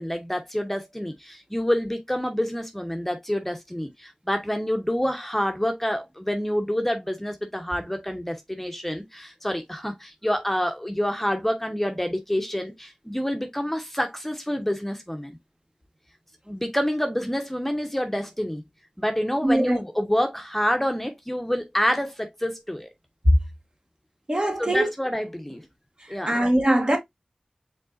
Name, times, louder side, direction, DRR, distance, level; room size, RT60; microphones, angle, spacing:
voice 1, 0.0-15.4 16.5-18.6 19.0-22.9 24.6-25.6 26.1-26.4, equal, 10° left, 0.9 m, -27 dB
voice 2, 19.4-19.8 24.3-24.9 26.3-27.0, right 1 dB, 40° right, 2.0 m, -21 dB
5.2 x 3.6 x 2.5 m
wide cardioid pair, 45°, 2 cm